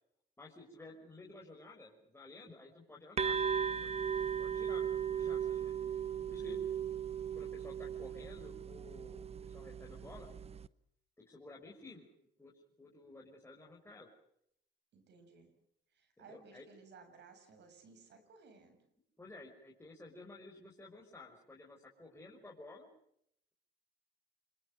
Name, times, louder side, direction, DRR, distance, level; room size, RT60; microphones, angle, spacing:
voice 1, 0.4-4.0 4.4-5.8 6.3-6.6 7.3-10.3 11.2-12.1 12.4-12.5 12.8-14.1 16.2-16.6 19.2-22.9, left 2 dB, 15° left, -3 dB, 6.0 m, -54 dB
sound 1, 3.2-10.7, right 7 dB, 30° right, 1.0 m, -37 dB
voice 2, 6.3-6.9 14.9-15.5 15.9-18.8, right 4 dB, 65° right, 8 dB, 7.0 m, -59 dB
28.0 x 21.5 x 6.5 m, 0.73 s
cardioid pair, 85°, 19 cm